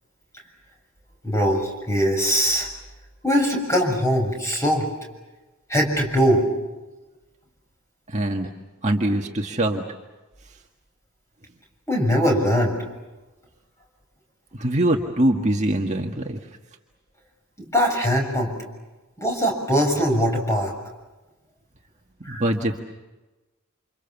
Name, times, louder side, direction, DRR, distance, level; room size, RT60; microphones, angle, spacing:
voice 1, 1.2-2.7 3.2-4.9 5.7-6.5 11.9-12.8 17.6-18.5 19.2-20.7 22.2-22.4, equal, 15° left, 1 dB, 6.8 m, -21 dB
voice 2, 8.1-8.5 8.8-9.8 14.5-16.4 22.3-22.8, right 1 dB, 35° right, 1 dB, 1.8 m, -23 dB
29.0 x 27.5 x 7.2 m, 1.1 s
head